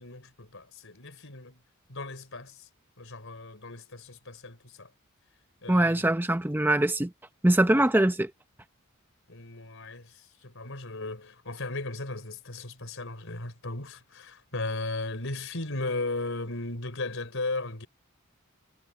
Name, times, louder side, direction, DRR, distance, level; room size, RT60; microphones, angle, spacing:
voice 1, 0.0-1.6 1.9-2.7 3.0-4.9 5.6-6.2 7.6-7.8 9.3-17.9, left 2 dB, 65° left, 4.4 m, -36 dB
voice 2, 5.7-7.1 7.4-8.3, right 1 dB, 10° right, 0.7 m, -22 dB
head